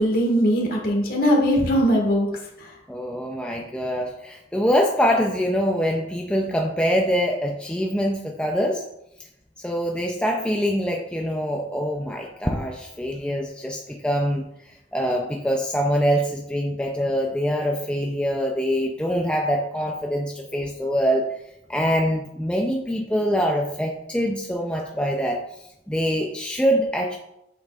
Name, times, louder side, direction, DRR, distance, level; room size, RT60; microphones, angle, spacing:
voice 1, 0.0-2.3 2.6-2.7, equal, 50° left, -1 dB, 1.7 m, -20 dB
voice 2, 2.9-8.8 9.6-21.2 21.7-25.4 25.9-27.2, equal, 5° left, 0 dB, 0.4 m, -24 dB
8.3 x 6.4 x 2.4 m, 0.85 s
head